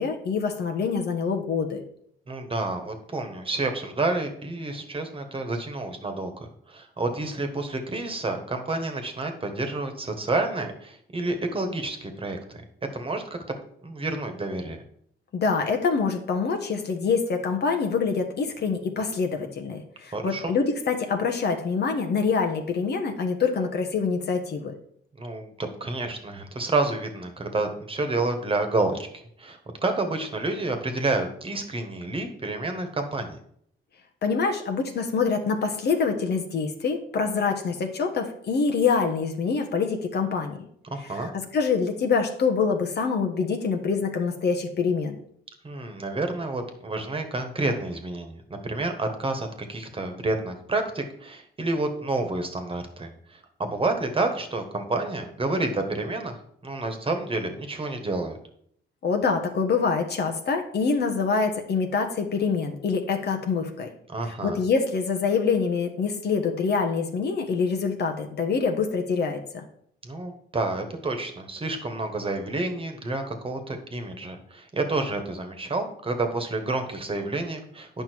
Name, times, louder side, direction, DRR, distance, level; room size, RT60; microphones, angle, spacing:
voice 1, 0.0-1.8 15.3-24.7 34.2-40.6 41.1-45.2 59.0-63.9 64.4-69.6, left 5 dB, 55° left, 4 dB, 1.3 m, -25 dB
voice 2, 2.3-12.6 12.9-13.4 13.8-14.8 20.1-20.5 25.2-29.0 29.4-33.4 40.9-41.3 45.6-56.3 56.6-58.4 64.1-64.6 70.0-77.9, right 2 dB, 25° right, 6 dB, 1.5 m, -29 dB
8.9 x 5.7 x 4.6 m, 0.67 s
cardioid pair, 90°, 20 cm